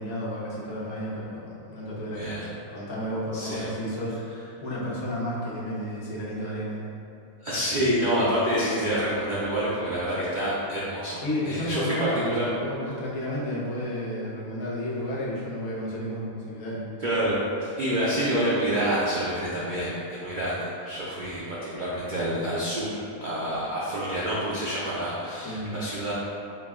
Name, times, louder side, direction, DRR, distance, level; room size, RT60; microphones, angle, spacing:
voice 1, 0.0-6.8 11.1-16.8 25.4-25.8, equal, 75° left, -6 dB, 1.3 m, -32 dB
voice 2, 2.1-2.4 3.3-3.7 7.4-11.2 11.5-12.5 17.0-26.1, equal, 90° right, -8 dB, 0.4 m, -27 dB
4.3 x 2.1 x 3.4 m, 2.6 s
omnidirectional pair, 1.5 m